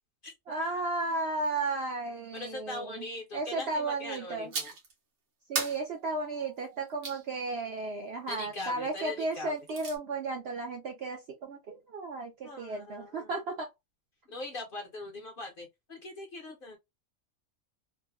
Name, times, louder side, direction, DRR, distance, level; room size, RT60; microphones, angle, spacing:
voice 1, 0.5-3.1 3.3-4.5 5.5-13.7, right 3 dB, 65° right, 0.6 m, -34 dB
voice 2, 2.3-4.7 8.3-9.6 12.4-13.3 14.3-16.8, left 2 dB, 50° left, 0.7 m, -41 dB
sound 1, 4.5-4.9 5.6-7.2 9.3-10.0, right 4 dB, 85° right, 1.4 m, -37 dB
3.2 x 2.1 x 2.3 m
omnidirectional pair, 1.5 m